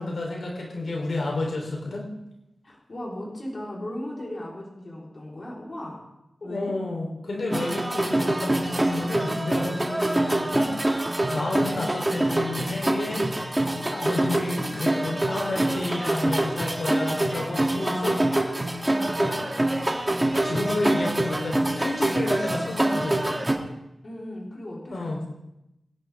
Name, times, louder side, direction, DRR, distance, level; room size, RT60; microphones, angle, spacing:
voice 1, 0.0-2.0 6.4-10.7 11.3-13.3 13.9-18.2 19.2-19.4 20.4-23.4 24.9-25.2, left 2 dB, 65° left, -1 dB, 3.5 m, -30 dB
voice 2, 2.6-6.1 6.4-6.8 17.7-18.2 18.9-19.2 24.0-25.3, left 1 dB, 40° left, -3 dB, 4.0 m, -36 dB
sound 1, 7.5-23.5, right 1 dB, 15° right, 2.0 m, -25 dB
25.0 x 10.5 x 3.6 m, 0.88 s
wide cardioid pair, 130°, 0 cm